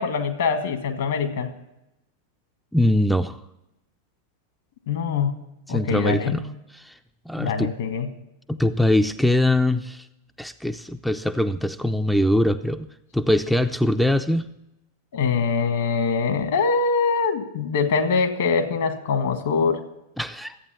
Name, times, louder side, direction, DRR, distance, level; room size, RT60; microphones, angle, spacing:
voice 1, 0.0-1.5 4.9-5.3 5.7-6.4 7.4-8.1 15.1-19.8, left 5 dB, 60° left, 8 dB, 1.6 m, -23 dB
voice 2, 2.7-3.4 5.7-6.4 6.7-7.0 7.3-7.7 8.5-10.1 10.4-12.9 13.1-14.5 20.2-20.5, left 1 dB, ahead, 8 dB, 0.5 m, -22 dB
13.5 x 8.8 x 7.2 m, 0.89 s
figure-of-eight pair, 90°, 0 cm